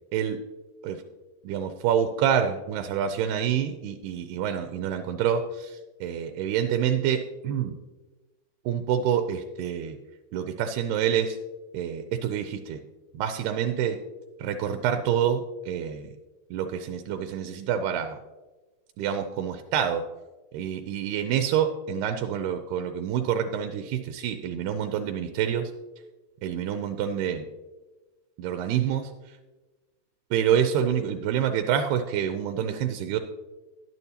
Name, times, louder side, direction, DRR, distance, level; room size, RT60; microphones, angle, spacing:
voice 1, 1.4-7.8 8.7-10.0 10.3-11.4 11.7-12.8 13.1-14.0 14.4-16.1 16.5-18.2 19.0-20.1 20.5-25.7 26.4-27.5 28.4-29.4 30.3-33.2, right 9 dB, 85° right, 7 dB, 2.4 m, -27 dB
11.5 x 10.5 x 2.8 m, 1.2 s
omnidirectional pair, 4.8 m